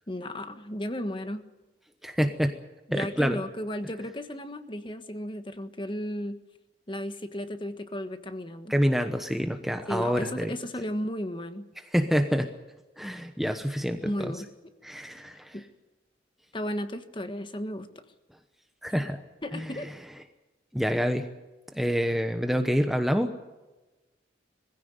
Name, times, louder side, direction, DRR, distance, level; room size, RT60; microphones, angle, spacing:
voice 1, 0.1-1.5 2.9-6.4 6.9-8.7 9.9-11.7 14.0-14.5 15.5-15.6 16.5-17.9 19.4-19.9, left 1 dB, 25° left, 9 dB, 1.4 m, -34 dB
voice 2, 2.0-2.5 2.9-3.4 8.7-10.5 11.9-12.5 13.0-14.3 14.8-15.5 18.8-19.2 19.5-19.7 20.7-21.3 21.7-23.4, equal, ahead, 7 dB, 1.0 m, -27 dB
21.5 x 16.0 x 9.5 m, 1.1 s
head